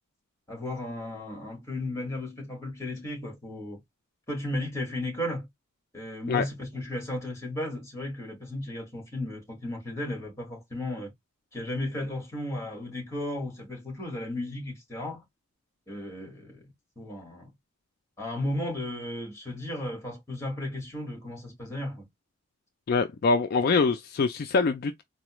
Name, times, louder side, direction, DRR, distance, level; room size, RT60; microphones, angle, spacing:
voice 1, 0.5-3.8 4.3-5.5 5.9-11.1 11.5-15.2 15.9-16.7 17.0-17.5 18.2-22.1, left 1 dB, 15° left, 1.9 m, -34 dB
voice 2, 22.9-25.0, left 4 dB, 45° left, 0.3 m, -24 dB
4.0 x 2.2 x 3.0 m
head